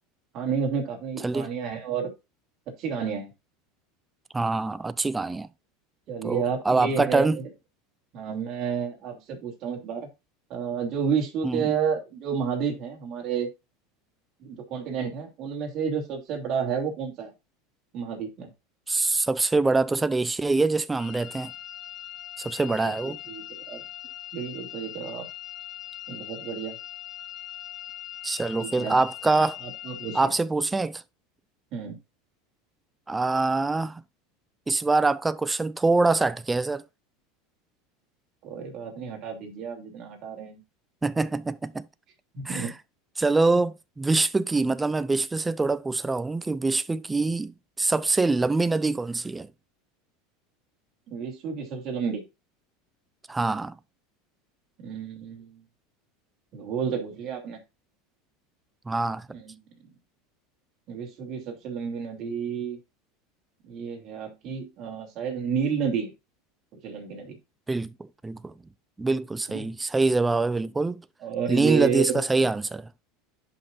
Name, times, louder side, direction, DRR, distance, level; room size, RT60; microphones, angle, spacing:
voice 1, 0.3-2.1 2.7-3.3 6.1-7.5 8.1-10.1 10.5-13.5 14.4-17.3 17.9-18.5 23.0-23.8 24.3-25.3 26.1-26.8 28.6-29.0 29.3-30.3 31.7-32.0 38.4-40.6 42.3-42.7 47.2-47.3 51.1-52.3 54.8-55.6 56.5-57.6 59.3-59.6 60.9-62.8 63.6-66.1 66.8-67.4 69.5-69.6 71.2-72.2, right 6 dB, 45° right, 2.8 m, -31 dB
voice 2, 4.3-5.5 6.2-7.4 11.4-11.7 18.9-21.5 22.4-23.2 28.2-29.6 30.1-31.0 33.1-34.0 34.7-36.8 41.0-41.8 42.5-42.7 43.2-49.5 53.3-53.8 58.9-59.3 67.7-67.9 68.2-68.5 69.0-71.0 71.5-72.9, right 3 dB, 10° right, 0.4 m, -24 dB
sound 1, 21.0-30.3, left 14 dB, 25° left, 1.5 m, -41 dB
10.5 x 5.4 x 2.5 m
supercardioid pair, 125°, 0 cm